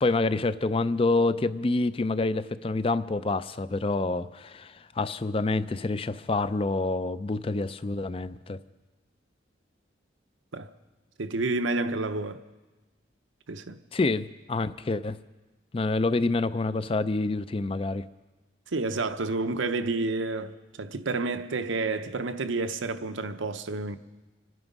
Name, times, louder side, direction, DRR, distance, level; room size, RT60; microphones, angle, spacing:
voice 1, 0.0-8.6 13.9-15.2 15.7-18.0, left 3 dB, 30° left, 0.4 m, -27 dB
voice 2, 11.2-12.4 13.5-13.8 18.7-24.0, right 3 dB, 85° right, 0.8 m, -30 dB
26.0 x 9.4 x 5.3 m
head